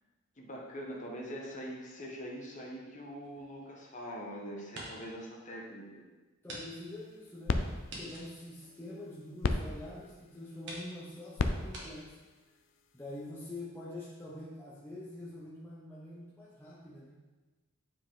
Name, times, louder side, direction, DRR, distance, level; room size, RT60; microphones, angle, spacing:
voice 1, 0.4-6.1, equal, 35° left, -1 dB, 1.2 m, -43 dB
sound 1, 3.2-4.2 4.6-5.2 5.6-5.7 6.4-6.6 6.9-7.0 7.9-9.4 10.1-10.2 10.6-10.9 11.7-11.9, right 1 dB, 55° right, 1.7 m, -47 dB
voice 2, 6.4-7.7 8.0-12.2 12.9-17.2, left 1 dB, 10° left, -7 dB, 0.9 m, -45 dB
sound 2, 6.9-13.3, left 3 dB, 60° left, 0.5 m, -38 dB
8.9 x 4.7 x 3.7 m, 1.2 s
head